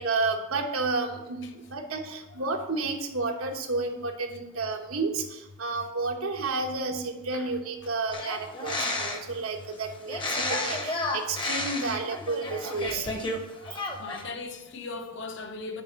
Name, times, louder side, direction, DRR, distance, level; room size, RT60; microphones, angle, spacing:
voice 1, 0.0-13.1, right 3 dB, 90° right, 1.2 m, -31 dB
sound 1, 8.1-9.4 10.1-13.4 13.6-14.2, left 2 dB, 25° left, 0.8 m, -31 dB
voice 2, 13.3-15.8, left 3 dB, 55° left, 0.8 m, -39 dB
6.8 x 4.9 x 6.4 m
head